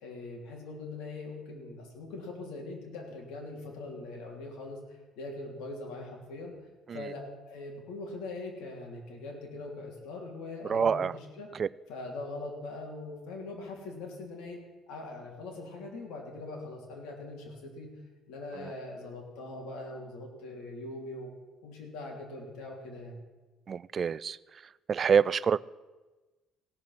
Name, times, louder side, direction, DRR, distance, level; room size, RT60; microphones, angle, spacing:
voice 1, 0.0-4.8 5.1-6.5 6.9-11.5 11.9-14.6 14.9-17.9 18.3-21.3 21.6-23.2, left 2 dB, 85° left, 0 dB, 3.2 m, -41 dB
voice 2, 10.7-11.1 11.6-11.7 18.6-18.7 23.7-24.4 24.9-25.6, right 6 dB, 35° right, 18 dB, 0.3 m, -26 dB
17.0 x 6.2 x 7.5 m, 1.2 s
cardioid pair, 135°, 0 cm